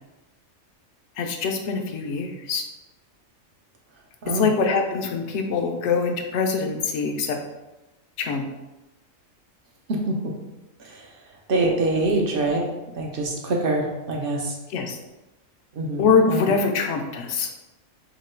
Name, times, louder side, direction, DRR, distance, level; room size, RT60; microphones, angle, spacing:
voice 1, 1.2-2.6 4.3-7.4 8.2-8.4 14.7-15.0 16.0-17.5, left 5 dB, 70° left, 4 dB, 0.8 m, -23 dB
voice 2, 9.9-10.3 10.8-11.1 11.5-14.6 15.7-16.4, right 2 dB, 55° right, 0 dB, 0.7 m, -25 dB
2.9 x 2.8 x 4.3 m, 1.0 s
omnidirectional pair, 1.4 m